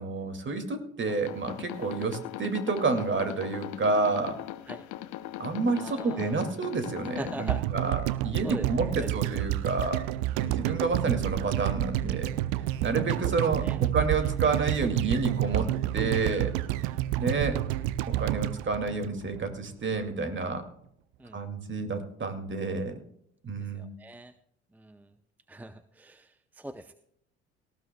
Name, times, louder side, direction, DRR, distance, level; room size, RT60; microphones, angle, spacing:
voice 1, 0.0-4.4 5.4-10.1 10.4-12.3 12.8-15.7 15.9-16.5 17.2-17.6 18.2-20.7 21.3-23.0 23.4-23.9, right 3 dB, 35° right, 7 dB, 2.4 m, -29 dB
sound 1, 1.1-7.6, left 14 dB, 65° left, 0.9 m, -40 dB
voice 2, 5.7-6.4 7.2-7.6 8.4-8.7 9.0-9.1 10.3-10.4 13.6-13.8 16.8-17.0 21.2-21.4 23.7-24.3 24.7-25.1 25.5-26.9, right 1 dB, 5° right, 11 dB, 0.7 m, -42 dB
sound 2, 7.5-19.7 20.0-20.1, right 14 dB, 70° right, 0.7 m, -29 dB
18.5 x 15.0 x 2.3 m, 0.71 s
hypercardioid pair, 55°, 33 cm